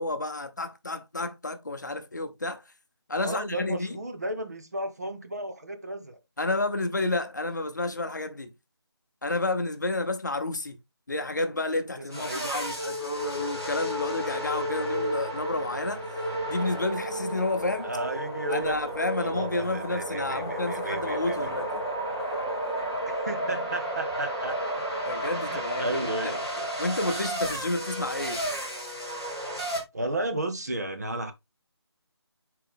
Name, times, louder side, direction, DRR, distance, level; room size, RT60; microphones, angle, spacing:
voice 1, 0.0-2.6 3.1-4.0 6.4-8.5 9.2-10.8 11.1-16.1 16.5-17.9 18.5-21.9 25.1-26.3 26.8-28.4, left 2 dB, 45° left, 0.7 m, -30 dB
voice 2, 3.1-6.2 12.0-12.5 17.8-18.9 19.2-21.5 23.1-24.8 25.3-26.7 29.9-31.3, right 1 dB, 40° right, 1.0 m, -34 dB
sound 1, 12.1-29.8, equal, 10° right, 0.7 m, -32 dB
5.7 x 4.7 x 3.6 m
figure-of-eight pair, 180°, 14 cm